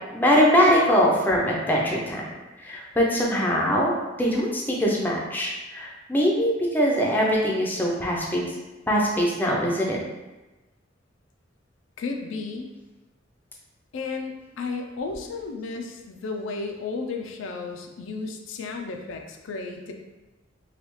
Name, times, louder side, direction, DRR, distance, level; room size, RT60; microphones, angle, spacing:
voice 1, 0.1-2.2 2.6-8.5 8.9-10.0, equal, 10° left, -3 dB, 0.5 m, -22 dB
voice 2, 12.0-12.7 13.9-19.9, left 4 dB, 85° left, 3 dB, 0.4 m, -33 dB
3.3 x 2.3 x 3.0 m, 1.1 s
head